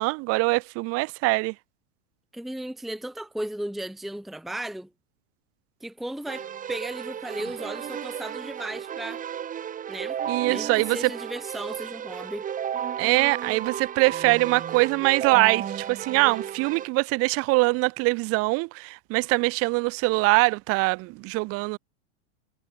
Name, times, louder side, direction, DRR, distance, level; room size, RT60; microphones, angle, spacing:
voice 1, 0.0-1.5 10.3-11.1 13.0-21.8, right 25 dB, 40° right, 1.7 m, -23 dB
voice 2, 2.3-4.9 5.8-9.2 9.9-10.2 10.4-12.4, right 1 dB, ahead, 1.0 m, -35 dB
Keyboard (musical), 6.2-16.9, right 9 dB, 20° right, 5.9 m, -33 dB
supercardioid pair, 155°, 36 cm